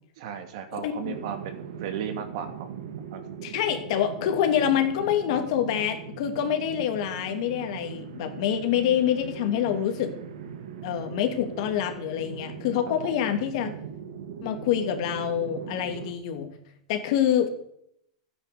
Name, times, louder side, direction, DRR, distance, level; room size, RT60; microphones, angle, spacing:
voice 1, 0.2-2.7 3.1-3.2, right 8 dB, 60° right, 7 dB, 2.7 m, -35 dB
voice 2, 0.7-1.1 3.4-10.1 10.8-13.7 14.4-16.5 16.9-17.5, left 10 dB, 60° left, 6 dB, 2.6 m, -26 dB
sound 1, 1.0-16.1, right 8 dB, 80° right, 1.8 m, -40 dB
13.0 x 9.8 x 7.1 m, 0.73 s
hypercardioid pair, 115°, 3 cm